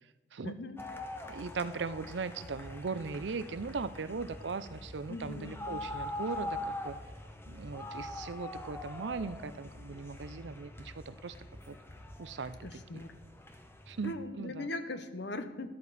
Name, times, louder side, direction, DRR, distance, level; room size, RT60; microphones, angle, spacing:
voice 1, 0.4-0.8 5.1-5.6 12.6-13.1 14.0-15.7, left 2 dB, 70° left, 9 dB, 1.0 m, -40 dB
sound 1, 0.8-14.2, left 1 dB, 15° left, 0.9 m, -44 dB
voice 2, 1.3-7.0 7.5-11.3 11.7-11.8 12.2-13.0 13.9-14.7, right 4 dB, 75° right, 14 dB, 0.6 m, -39 dB
13.0 x 12.0 x 4.2 m, 1.2 s
head